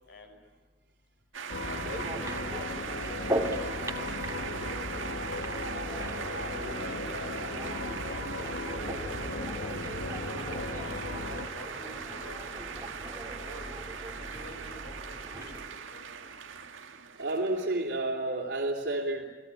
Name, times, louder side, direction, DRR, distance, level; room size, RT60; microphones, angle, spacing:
sound 1, 1.3-18.0, right 6 dB, 90° right, 1.9 m, -40 dB
sound 2, 1.5-11.5, left 2 dB, 85° left, 1.4 m, -37 dB
voice 1, 1.6-2.7 3.4-4.8 5.0-5.2 6.2-6.6 6.8-8.3 8.7-9.7 10.2-12.7 13.2-13.7 14.2-16.0, left 1 dB, 60° left, 4 dB, 5.9 m, -48 dB
sound 3, 1.7-15.7, right 1 dB, 15° right, 2.3 m, -39 dB
voice 2, 17.2-19.3, right 2 dB, 65° right, -1 dB, 3.3 m, -30 dB
29.5 x 20.0 x 9.8 m, 1.3 s
head